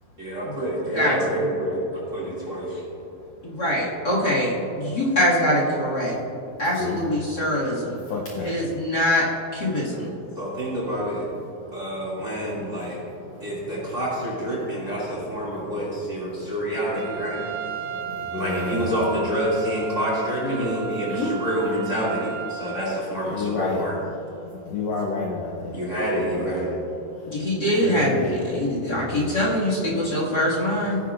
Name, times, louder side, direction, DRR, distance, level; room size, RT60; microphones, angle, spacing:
voice 1, 0.2-2.8 10.4-11.3 11.7-13.0 13.4-17.4 18.3-24.0 25.7-26.7, equal, 25° right, -6 dB, 2.3 m, -27 dB
voice 2, 0.9-1.4 3.4-6.1 6.6-8.0 8.4-9.3 9.5-10.1 20.4-20.7 21.2-21.4 27.3-31.0, left 1 dB, 35° left, -5 dB, 2.0 m, -23 dB
voice 3, 8.1-8.5 18.3-18.9 23.3-23.8 24.7-25.8 26.2-26.4 27.8-28.2, left 4 dB, 80° left, -2 dB, 1.5 m, -29 dB
Trumpet, 16.9-23.0, right 9 dB, 85° right, 1.4 m, -34 dB
18.0 x 10.0 x 2.5 m, 2.9 s
omnidirectional pair, 4.0 m